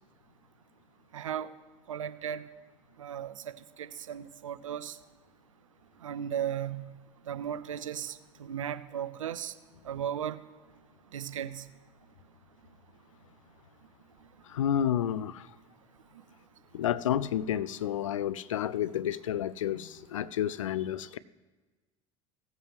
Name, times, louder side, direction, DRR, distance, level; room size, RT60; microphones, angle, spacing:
voice 1, 1.1-1.5 1.9-2.4 3.0-3.5 3.8-5.0 6.0-6.8 7.3-9.5 9.9-10.4 11.1-11.6, right 9 dB, 75° right, 0.5 m, -36 dB
voice 2, 14.5-15.5 16.7-21.2, left 10 dB, 75° left, 0.4 m, -30 dB
16.5 x 7.4 x 3.1 m
figure-of-eight pair, 70°, 17 cm